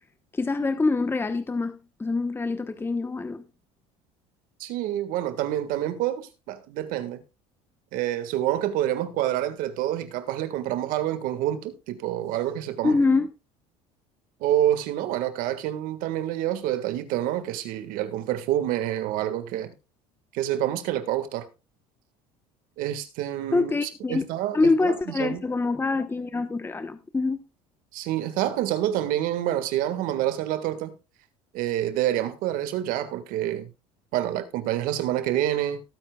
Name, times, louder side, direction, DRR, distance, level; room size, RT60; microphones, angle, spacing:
voice 1, 0.3-3.5 12.8-13.3 23.5-24.2 24.5-27.4, left 3 dB, 15° left, 1.0 m, -25 dB
voice 2, 4.6-7.2 7.9-13.0 14.4-19.7 20.3-21.5 22.8-25.4 27.9-30.9 31.5-33.7 34.1-35.8, right 12 dB, 65° right, 1.7 m, -27 dB
18.0 x 8.9 x 2.3 m
supercardioid pair, 95°, 15 cm